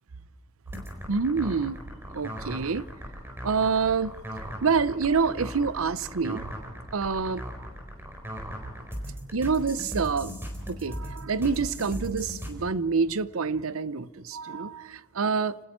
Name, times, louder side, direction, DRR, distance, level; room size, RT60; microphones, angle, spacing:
sound 1, 0.7-12.5, equal, 10° right, 4.1 m, -38 dB
voice 1, 1.1-1.8 2.1-2.9 3.4-4.1 4.6-6.5 6.9-7.4 9.3-10.4 10.7-15.6, right 5 dB, 75° right, 0.7 m, -27 dB
30.0 x 20.0 x 4.5 m
head